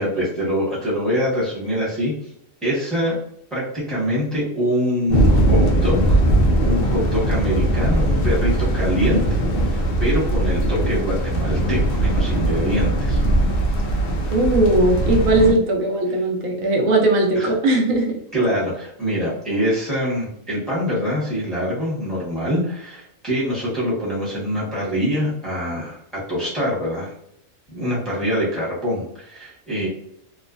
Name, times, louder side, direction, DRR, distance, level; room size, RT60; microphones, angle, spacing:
voice 1, 0.0-2.1 2.6-3.2 3.5-6.2 6.6-9.2 9.7-13.2 17.3-17.5 18.3-27.1 27.7-29.9, equal, ahead, -7 dB, 1.0 m, -24 dB
sound 1, 5.1-15.5, right 1 dB, 60° left, 0.6 m, -19 dB
voice 2, 14.3-18.2, right 1 dB, 75° right, 0 dB, 1.0 m, -18 dB
3.0 x 2.1 x 2.4 m, 0.72 s
omnidirectional pair, 1.4 m